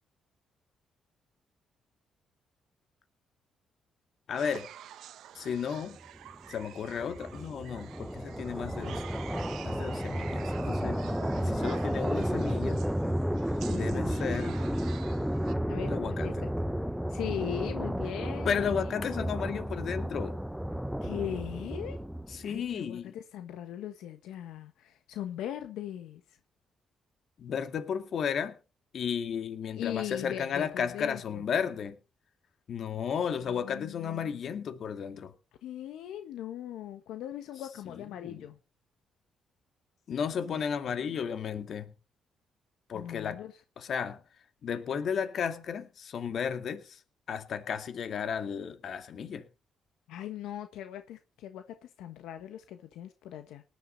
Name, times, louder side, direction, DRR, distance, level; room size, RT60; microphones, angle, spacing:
voice 1, 4.3-4.7 5.4-6.0 6.5-9.1 9.6-11.0 11.4-12.9 13.7-14.6 15.8-16.5 18.4-20.4 22.3-23.2 27.4-28.6 28.9-32.0 32.7-35.3 37.9-38.5 40.1-41.9 42.9-43.5 43.8-44.2 44.6-47.0 47.3-49.5, left 7 dB, 60° left, 2.3 m, -34 dB
sound 1, 4.3-15.5, right 11 dB, 80° right, 1.3 m, -49 dB
sound 2, 6.3-22.6, equal, ahead, 0.9 m, -32 dB
voice 2, 13.6-14.1 15.7-15.9 16.2-16.5 17.1-18.9 21.0-22.0 22.4-26.2 29.7-31.4 33.6-34.5 35.6-38.6 40.5-40.6 41.0-41.1 42.9-43.5 50.1-53.6, left 11 dB, 90° left, 1.3 m, -39 dB
19.0 x 11.0 x 4.1 m
cardioid pair, 90°, 0 cm